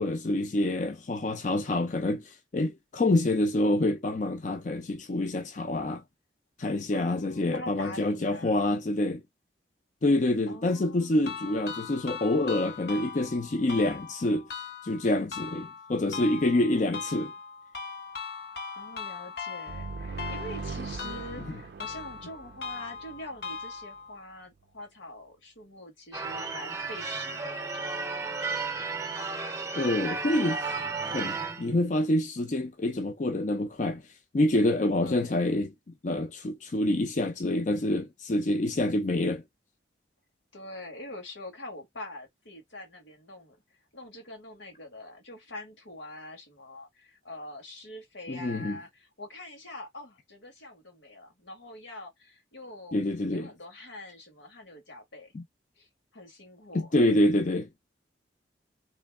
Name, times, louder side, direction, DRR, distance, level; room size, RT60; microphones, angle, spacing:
voice 1, 0.0-6.0 6.6-9.2 10.0-14.5 14.8-17.3 29.7-30.8 31.1-34.0 34.3-35.7 36.0-39.4 48.3-48.8 52.9-53.5 55.3-55.4 56.7-57.7, left 1 dB, 40° left, 0.5 m, -27 dB
voice 2, 6.9-8.7 10.5-11.4 16.8-17.0 18.7-28.0 35.0-35.4 40.5-43.6 43.9-53.0 53.3-55.3 55.8-56.9, left 1 dB, 80° left, 1.8 m, -44 dB
sound 1, 11.3-24.2, left 5 dB, 60° left, 1.0 m, -40 dB
sound 2, 19.7-23.4, right 4 dB, 55° right, 0.4 m, -40 dB
Church bell / Car / Alarm, 26.1-31.7, right 4 dB, 15° right, 0.7 m, -33 dB
3.2 x 3.1 x 3.6 m
head